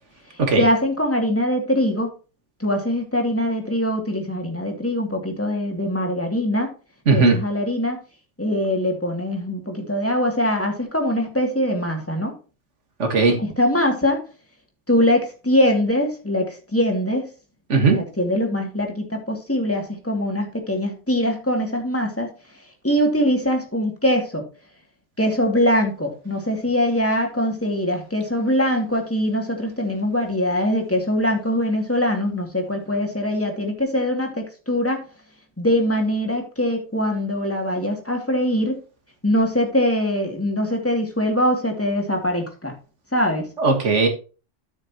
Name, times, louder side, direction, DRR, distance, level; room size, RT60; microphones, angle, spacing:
voice 1, 0.6-2.1 2.6-6.7 7.1-8.0 8.4-12.3 13.4-14.2 14.9-17.3 17.9-22.3 22.8-24.4 25.2-35.0 35.6-38.8 39.2-42.7 43.1-43.5, equal, 10° left, 2 dB, 2.5 m, -22 dB
voice 2, 13.0-13.4 17.7-18.0 43.6-44.1, right 3 dB, 90° right, 4 dB, 2.0 m, -17 dB
13.5 x 6.4 x 3.0 m, 0.34 s
omnidirectional pair, 1.2 m